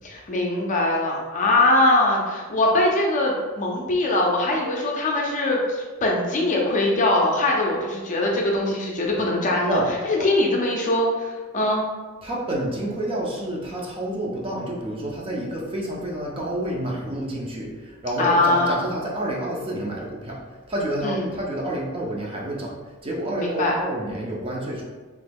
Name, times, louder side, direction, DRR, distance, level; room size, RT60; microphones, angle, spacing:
voice 1, 0.0-9.8 10.1-11.9 18.2-18.8 21.0-21.3 23.4-23.8, left 2 dB, 35° left, -1 dB, 0.5 m, -22 dB
voice 2, 12.2-20.4 20.7-22.7 23.0-24.8, right 1 dB, 25° right, -3 dB, 0.5 m, -29 dB
3.0 x 2.2 x 3.4 m, 1.4 s
head